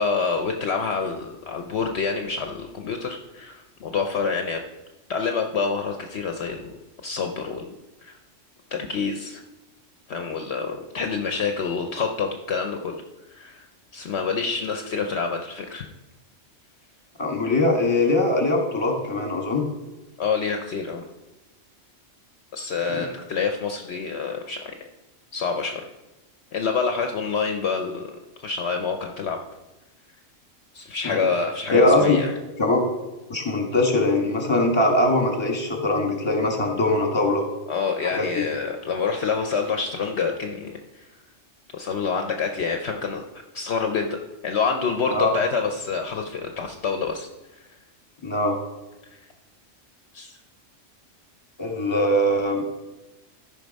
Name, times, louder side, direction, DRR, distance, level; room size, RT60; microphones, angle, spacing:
voice 1, 0.0-4.6 5.1-6.8 7.0-7.7 8.0-8.2 8.7-9.4 10.1-13.0 13.3-13.7 13.9-15.9 20.2-21.1 22.5-24.7 25.3-25.9 26.5-29.4 30.7-32.3 37.7-41.1 41.7-43.3 43.5-44.2 44.4-47.3 49.1-49.2 50.1-50.4, left 5 dB, 65° left, 4 dB, 1.0 m, -27 dB
voice 2, 17.2-19.6 22.9-23.1 31.0-31.3 31.7-32.2 32.6-32.8 33.3-37.4 38.0-38.4 45.1-45.3 48.2-48.6 51.6-52.7, left 2 dB, 20° left, 2 dB, 1.5 m, -21 dB
13.0 x 5.4 x 5.2 m, 1.1 s
omnidirectional pair, 1.3 m